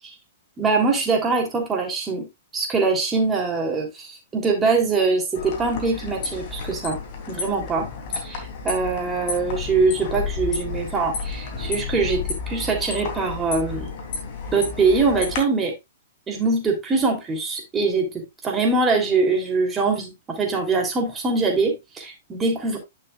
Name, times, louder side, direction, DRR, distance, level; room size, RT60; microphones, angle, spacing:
voice 1, 0.6-2.3 2.5-7.0 7.3-7.9 8.2-13.9 14.5-15.7 16.3-22.8, right 4 dB, 20° right, 3.1 m, -23 dB
sound 1, 5.3-15.4, left 5 dB, 50° left, 3.1 m, -31 dB
11.0 x 6.6 x 2.4 m
hypercardioid pair, 120°, 0 cm